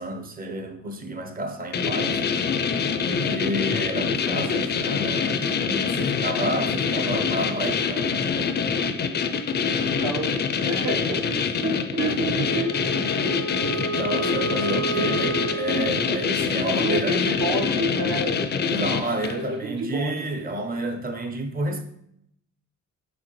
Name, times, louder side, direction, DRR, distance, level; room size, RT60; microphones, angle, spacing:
voice 1, 0.0-2.2 3.1-8.1 13.7-17.2 18.7-21.8, right 1 dB, 30° right, 0.7 m, -30 dB
sound 1, 1.7-19.5, left 6 dB, 35° left, 0.4 m, -25 dB
voice 2, 10.0-13.3 16.6-18.5 19.3-20.4, right 1 dB, 65° right, 1.1 m, -30 dB
Wind instrument woodwind instrument, 12.4-16.8, right 3 dB, 90° right, 0.9 m, -31 dB
5.0 x 3.4 x 3.1 m
cardioid pair, 90°, 30 cm